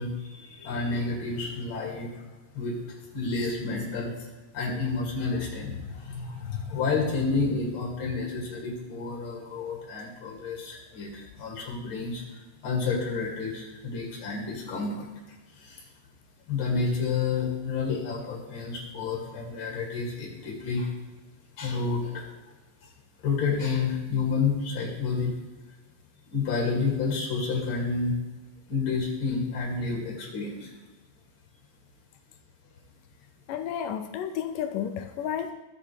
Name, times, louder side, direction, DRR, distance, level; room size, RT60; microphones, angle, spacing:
voice 1, 0.0-2.1 2.5-2.8 3.1-4.1 4.5-12.2 12.6-15.1 15.6-15.8 16.5-20.9 21.6-22.3 23.2-25.3 26.3-28.1 28.7-30.7, left 4 dB, 40° left, -2 dB, 2.7 m, -30 dB
voice 2, 33.5-35.5, left 9 dB, 80° left, 7 dB, 2.0 m, -31 dB
13.0 x 7.9 x 3.2 m, 1.2 s
omnidirectional pair, 4.1 m